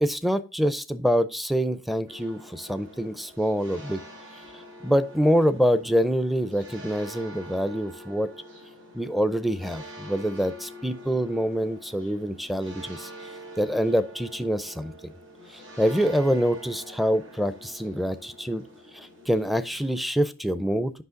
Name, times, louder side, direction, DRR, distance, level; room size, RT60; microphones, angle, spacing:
voice 1, 0.0-4.0 4.8-8.3 8.9-13.1 13.6-15.1 15.8-18.6 18.9-20.9, equal, ahead, 13 dB, 0.4 m, -25 dB
sound 1, 2.1-20.0, right 1 dB, 70° right, 5.2 m, -45 dB
8.1 x 5.7 x 3.7 m, 0.32 s
head